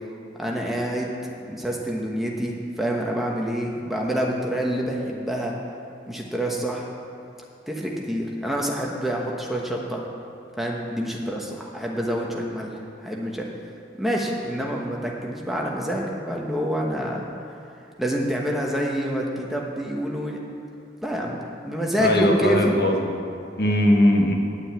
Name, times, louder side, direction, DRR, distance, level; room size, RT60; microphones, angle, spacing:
voice 1, 0.4-1.1 1.4-5.5 6.1-6.9 7.7-10.0 10.6-13.5 14.0-17.2 18.0-20.4 21.0-22.7, equal, ahead, -2 dB, 1.1 m, -27 dB
voice 2, 22.0-23.2 23.6-24.3, left 1 dB, 60° left, 1 dB, 1.4 m, -19 dB
9.5 x 8.8 x 8.6 m, 2.6 s
head